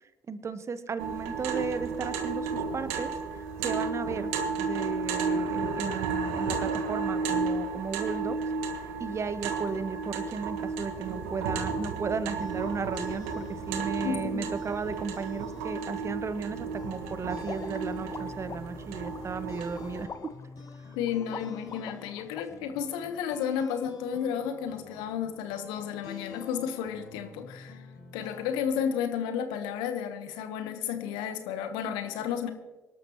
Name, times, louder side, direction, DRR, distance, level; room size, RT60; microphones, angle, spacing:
voice 1, 0.3-4.3 4.6-8.4 8.7-20.3, right 5 dB, 35° right, 13 dB, 1.0 m, -35 dB
sound 1, 1.0-20.0, right 4 dB, 75° right, 1.5 m, -33 dB
sound 2, 12.1-29.0, left 4 dB, 55° left, 4.9 m, -48 dB
voice 2, 14.0-14.5 20.9-27.8 28.1-32.5, left 8 dB, 70° left, 8 dB, 1.3 m, -32 dB
sound 3, 17.4-22.4, left 6 dB, 40° left, 0.8 m, -44 dB
24.0 x 12.0 x 3.1 m, 1.2 s
hypercardioid pair, 50°, 8 cm